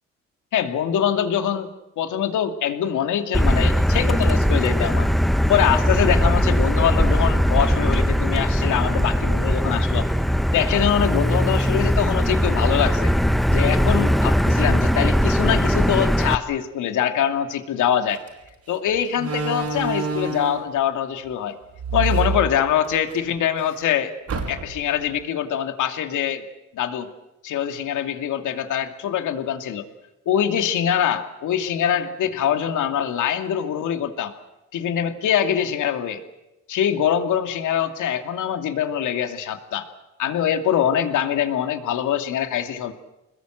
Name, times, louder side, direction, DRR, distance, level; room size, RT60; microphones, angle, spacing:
voice 1, 0.5-5.1 5.5-10.1 10.5-13.1 13.5-18.2 18.7-21.6 21.9-24.1 24.5-26.4 26.7-27.1 27.4-29.9 30.3-34.3 34.7-36.2 36.7-39.9 40.2-42.9, left 9 dB, 80° left, 6 dB, 2.6 m, -23 dB
Motor vehicle (road), 3.3-16.4, equal, ahead, 0.9 m, -20 dB
Slam, 18.1-18.3 19.2-20.7 21.8-23.2 23.5-23.6 24.3-24.9, right 3 dB, 55° right, 5.0 m, -27 dB
26.5 x 21.0 x 7.9 m, 0.95 s
cardioid pair, 90°, 30 cm